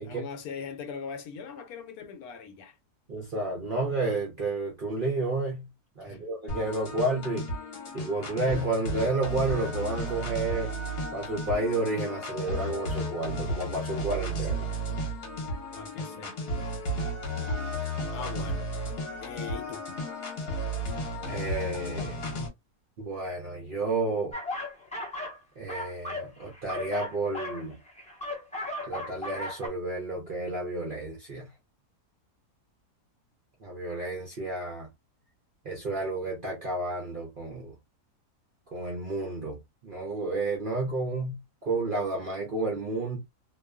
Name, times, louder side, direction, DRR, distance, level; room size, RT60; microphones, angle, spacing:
voice 1, 0.0-2.8 6.0-6.3 15.7-16.5 17.9-18.7 19.2-20.0, left 6 dB, 75° left, 1.0 m, -41 dB
voice 2, 3.1-5.7 6.0-7.5 7.9-10.7 11.1-14.7 21.2-22.3 23.0-24.4 25.6-27.8 28.8-31.5 33.6-34.9 35.6-37.7 38.7-43.2, right 2 dB, 60° right, 0.5 m, -31 dB
sound 1, 6.5-22.5, equal, 45° left, 0.9 m, -33 dB
sound 2, 24.3-25.4 25.7-29.7, left 2 dB, 10° left, 0.4 m, -36 dB
2.6 x 2.3 x 2.2 m
omnidirectional pair, 1.7 m